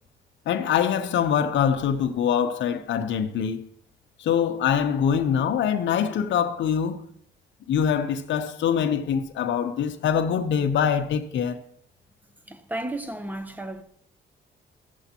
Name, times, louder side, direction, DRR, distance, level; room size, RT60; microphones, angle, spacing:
voice 1, 0.5-3.6 4.2-7.0 7.7-11.6, left 8 dB, 70° left, 0.8 m, -24 dB
voice 2, 12.5-13.8, right 1 dB, 10° right, 0.9 m, -33 dB
14.0 x 6.9 x 2.9 m
cardioid pair, 90°, 20 cm